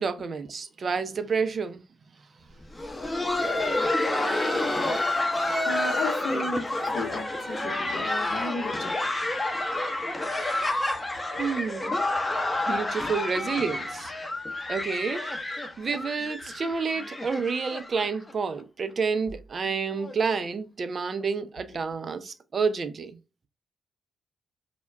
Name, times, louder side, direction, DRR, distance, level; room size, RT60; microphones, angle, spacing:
voice 1, 0.0-1.8 11.4-12.0 12.7-14.1 14.7-15.2 15.6-23.2, right 5 dB, 50° right, 0.4 m, -29 dB
Laughter, 2.6-18.3 18.6-18.7 19.3-19.4 19.9-20.1 21.2-21.3, left 2 dB, 20° left, 0.7 m, -29 dB
voice 2, 5.0-8.9, left 2 dB, 65° left, 0.8 m, -35 dB
2.2 x 2.1 x 3.4 m
hypercardioid pair, 45°, 0 cm